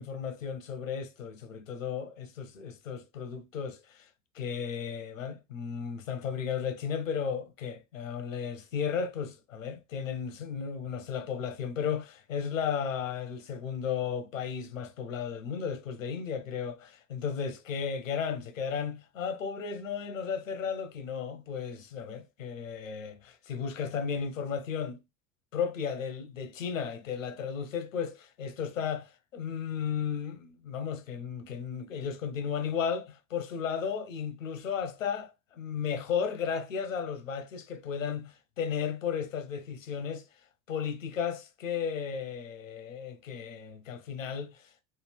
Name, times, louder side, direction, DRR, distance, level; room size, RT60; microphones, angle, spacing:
voice 1, 0.0-4.1 4.3-25.0 25.5-40.2 40.7-44.7, left 7 dB, 85° left, 0.8 m, -34 dB
3.2 x 2.3 x 3.4 m
hypercardioid pair, 75°, 38 cm